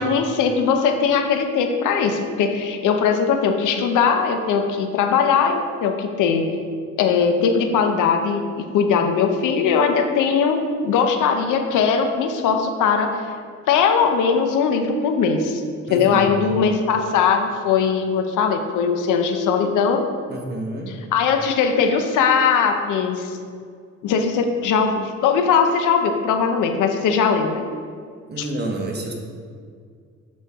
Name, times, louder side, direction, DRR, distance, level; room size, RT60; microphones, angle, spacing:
voice 1, 0.0-6.5 7.0-8.4 8.7-13.2 13.7-15.6 15.9-20.0 21.1-23.4 24.0-27.6 28.4-28.5, left 6 dB, 85° left, 5 dB, 0.7 m, -20 dB
voice 2, 15.9-16.4 20.3-21.0 28.3-29.1, right 1 dB, 35° right, 1 dB, 1.2 m, -29 dB
9.0 x 4.4 x 3.6 m, 2.1 s
cardioid pair, 90°, 30 cm